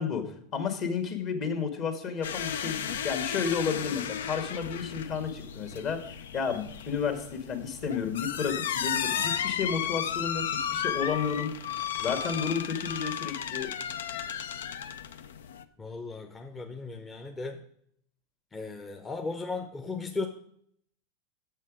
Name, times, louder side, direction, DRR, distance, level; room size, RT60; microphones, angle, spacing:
voice 1, 0.0-6.0 6.3-11.5 12.0-13.7, left 6 dB, 45° left, 6 dB, 1.6 m, -32 dB
sound 1, 2.2-15.6, left 8 dB, 80° left, 0.4 m, -34 dB
voice 2, 15.8-17.6 18.5-20.3, left 3 dB, 20° left, 4 dB, 0.7 m, -36 dB
7.2 x 6.5 x 5.0 m, 0.67 s
hypercardioid pair, 105°, 0 cm